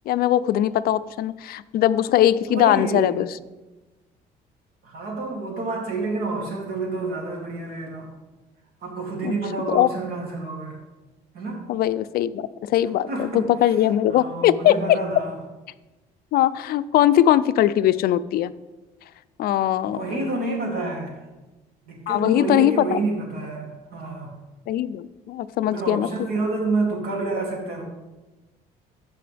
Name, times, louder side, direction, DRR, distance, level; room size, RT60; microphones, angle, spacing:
voice 1, 0.1-3.3 9.2-9.3 9.7-9.9 11.7-15.0 16.3-18.5 19.4-20.1 22.1-23.0 24.7-26.1, left 12 dB, 65° left, 14 dB, 0.4 m, -20 dB
voice 2, 2.5-3.1 4.8-8.1 8.8-10.8 11.3-11.6 13.1-13.5 14.1-15.3 19.9-21.2 21.9-24.3 25.7-27.8, right 3 dB, 65° right, -1 dB, 2.7 m, -28 dB
14.5 x 5.4 x 3.4 m, 1.1 s
cardioid pair, 110°, 17 cm